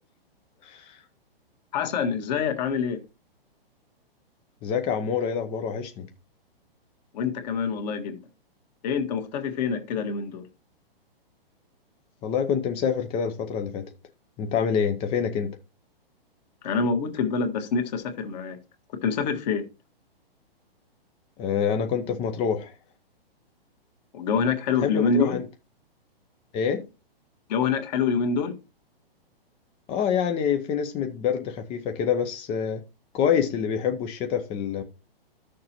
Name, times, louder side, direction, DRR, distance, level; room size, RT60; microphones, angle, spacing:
voice 1, 0.6-1.0 4.6-6.1 12.2-13.9 14.4-15.6 21.4-22.7 24.8-25.4 26.5-26.9 29.9-32.8 33.1-34.8, left 7 dB, 20° left, 0.6 m, -26 dB
voice 2, 1.7-3.0 7.1-8.2 8.8-10.4 16.6-18.6 19.0-19.6 24.1-25.4 27.5-28.5, left 5 dB, 45° left, 1.8 m, -26 dB
13.5 x 6.6 x 2.9 m
hypercardioid pair, 135°, 30 cm